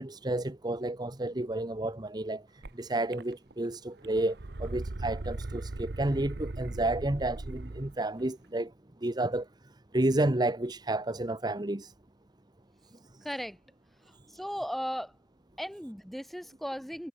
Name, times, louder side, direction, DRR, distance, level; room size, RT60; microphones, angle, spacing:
voice 1, 0.0-2.4 2.8-8.7 9.0-9.5 9.9-11.9, right 1 dB, 25° right, 1.0 m, -31 dB
sound 1, 2.6-2.7 3.1-3.7 4.0-7.9, right 2 dB, 65° right, 1.0 m, -38 dB
voice 2, 13.2-13.6 14.3-15.1 15.6-17.1, equal, ahead, 3.5 m, -36 dB
head